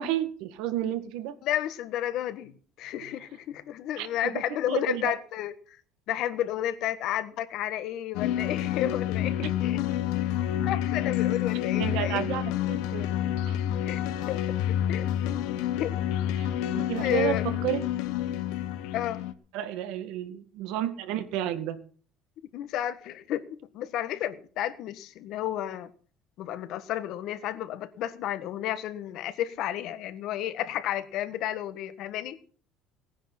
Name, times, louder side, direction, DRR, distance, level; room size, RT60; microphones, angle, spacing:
voice 1, 0.0-1.4 4.0-4.1 4.3-5.1 11.8-13.1 13.5-13.6 16.4-16.5 16.8-18.0 19.5-21.8, right 12 dB, 65° right, 10 dB, 1.9 m, -31 dB
voice 2, 1.4-5.8 6.1-9.8 10.7-12.2 13.9-14.0 14.3-14.4 14.9-15.1 15.8-15.9 17.0-17.4 18.9-19.2 22.5-23.5 23.7-25.9 26.4-32.4, left 12 dB, 50° left, 13 dB, 1.4 m, -32 dB
sound 1, 8.1-19.3, left 11 dB, 75° left, 1.2 m, -28 dB
18.5 x 10.0 x 5.9 m, 0.43 s
cardioid pair, 175°, 0 cm